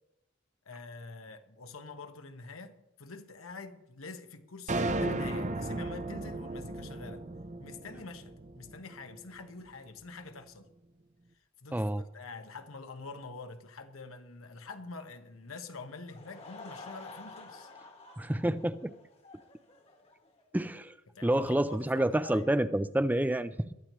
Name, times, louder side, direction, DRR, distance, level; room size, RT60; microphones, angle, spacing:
voice 1, 0.6-7.3 7.6-10.7 11.6-17.7 21.1-22.5, left 3 dB, 90° left, 1.2 m, -46 dB
sound 1, 4.7-9.1, right 2 dB, 35° right, 0.7 m, -35 dB
voice 2, 11.7-12.0 18.2-18.9 20.5-20.9 21.2-23.7, right 1 dB, 10° right, 0.4 m, -28 dB
Laughter / Crowd, 16.0-20.5, left 3 dB, 30° left, 1.4 m, -50 dB
22.0 x 13.0 x 3.1 m
head